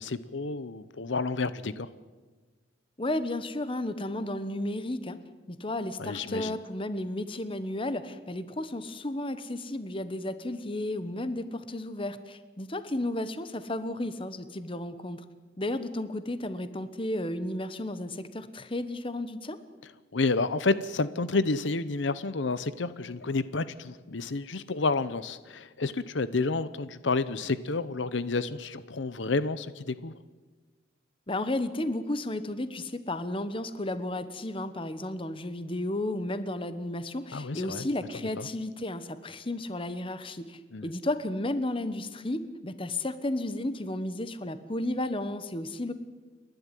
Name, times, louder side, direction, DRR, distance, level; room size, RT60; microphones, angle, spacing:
voice 1, 0.0-1.9 6.0-6.6 20.1-30.1 37.3-37.9 38.4-38.5 40.7-40.9, left 3 dB, 75° left, 15 dB, 0.8 m, -30 dB
voice 2, 3.0-5.2 5.5-15.2 15.6-19.6 31.3-45.9, left 1 dB, 30° left, 12 dB, 1.1 m, -33 dB
29.5 x 12.0 x 9.2 m, 1.3 s
head